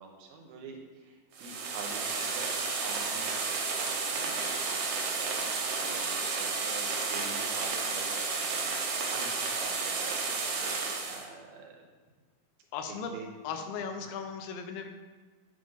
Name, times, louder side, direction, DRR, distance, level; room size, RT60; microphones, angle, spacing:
voice 1, 0.0-3.4 3.8-11.9 12.9-13.3, right 4 dB, 85° right, 1 dB, 2.9 m, -46 dB
sound 1, 1.3-11.3, right 4 dB, 70° right, 2.4 m, -32 dB
voice 2, 12.7-13.1 13.4-14.9, left 6 dB, 90° left, 5 dB, 2.7 m, -37 dB
8.9 x 5.2 x 3.9 m, 1.4 s
omnidirectional pair, 4.3 m